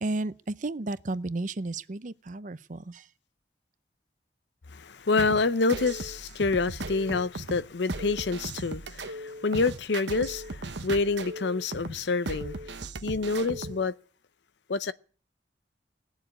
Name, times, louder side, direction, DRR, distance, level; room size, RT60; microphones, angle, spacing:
voice 1, 0.0-3.0, right 2 dB, 45° right, 0.6 m, -33 dB
voice 2, 4.7-12.7 13.0-13.9 14.7-14.9, left 3 dB, 75° left, 0.7 m, -27 dB
sound 1, 5.2-13.8, right 2 dB, 75° right, 1.0 m, -37 dB
18.5 x 7.3 x 9.9 m
head